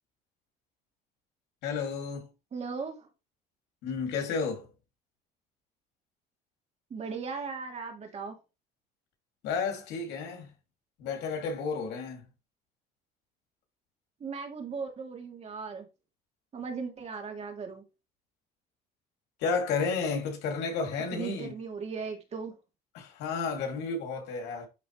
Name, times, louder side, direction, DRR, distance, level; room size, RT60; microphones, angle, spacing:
voice 1, 1.6-2.3 3.8-4.7 9.4-10.5 11.0-12.2 19.4-21.5 22.9-24.7, left 5 dB, 85° left, 2.7 m, -32 dB
voice 2, 2.5-3.1 6.9-8.4 14.2-15.9 16.5-17.8 21.1-22.6, right 5 dB, 40° right, 2.9 m, -37 dB
11.5 x 4.0 x 3.2 m
cardioid pair, 110°, 17 cm